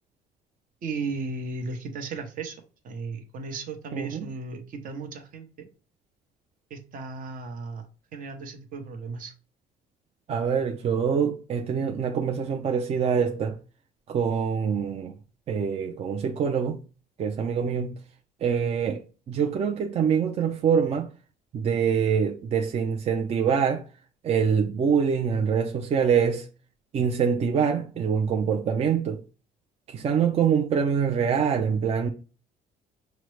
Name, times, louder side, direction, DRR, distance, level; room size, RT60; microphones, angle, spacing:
voice 1, 0.8-2.6 2.8-5.7 6.7-7.8 8.1-9.3, right 4 dB, 55° right, 0.8 m, -35 dB
voice 2, 3.9-4.3 10.3-13.6 14.1-15.2 15.5-16.8 17.2-18.0 18.4-21.1 21.5-23.8 24.2-26.5 26.9-29.2 29.9-32.1, right 7 dB, 40° right, 0.4 m, -25 dB
5.7 x 2.1 x 3.2 m
cardioid pair, 110°, 17 cm